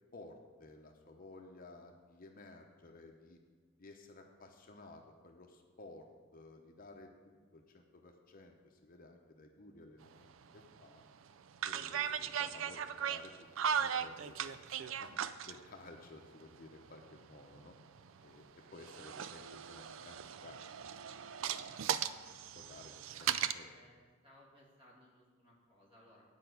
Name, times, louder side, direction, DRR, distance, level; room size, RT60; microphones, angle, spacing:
voice 1, 0.1-3.4 3.8-11.0 11.6-13.3 13.8-14.4 15.0-15.1 15.5-17.7 18.2-18.5 18.7-20.6 21.4-21.8 22.5-23.3 23.5-23.7, left 2 dB, 45° left, 3 dB, 0.8 m, -55 dB
sound 1, 10.0-10.1 10.6-10.8 11.5-15.6 16.7-18.3 18.8-23.5, right 8 dB, 70° right, 0.4 m, -38 dB
voice 2, 23.1-26.2, equal, 25° right, -4 dB, 2.4 m, -63 dB
9.1 x 5.5 x 7.8 m, 1.5 s
head